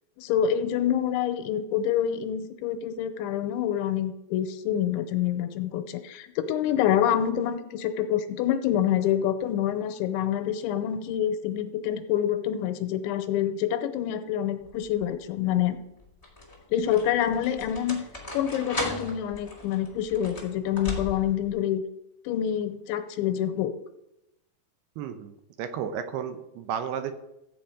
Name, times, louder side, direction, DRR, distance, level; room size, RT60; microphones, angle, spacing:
voice 1, 0.2-15.8 16.7-18.0 18.3-21.8 22.3-23.7, left 10 dB, 90° left, 9 dB, 3.2 m, -27 dB
sound 1, 14.7-15.1 16.0-21.5, left 1 dB, 15° left, 1.3 m, -37 dB
voice 2, 25.0-27.1, right 8 dB, 75° right, 9 dB, 2.5 m, -33 dB
14.5 x 8.1 x 4.9 m, 0.88 s
omnidirectional pair, 5.2 m